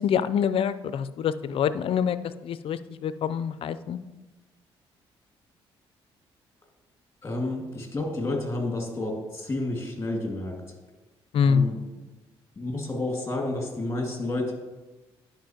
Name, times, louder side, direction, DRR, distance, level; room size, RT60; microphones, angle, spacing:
voice 1, 0.0-2.2 2.4-4.0 11.3-11.7, left 7 dB, 60° left, 14 dB, 0.4 m, -25 dB
voice 2, 7.2-10.6 11.4-11.8 12.6-14.5, left 2 dB, 25° left, 1 dB, 2.0 m, -30 dB
10.5 x 5.1 x 2.9 m, 1.1 s
supercardioid pair, 70°, 11 cm